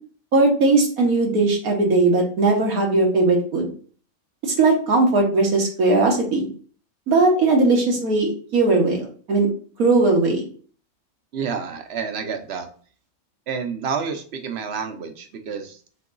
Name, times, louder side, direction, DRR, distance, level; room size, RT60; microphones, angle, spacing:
voice 1, 0.3-3.7 4.4-6.5 7.1-9.5 9.8-10.4, right 3 dB, 85° right, 0 dB, 1.7 m, -19 dB
voice 2, 11.3-12.7 13.5-15.8, right 6 dB, 55° right, 6 dB, 0.9 m, -29 dB
6.6 x 2.8 x 2.5 m, 0.44 s
omnidirectional pair, 1.5 m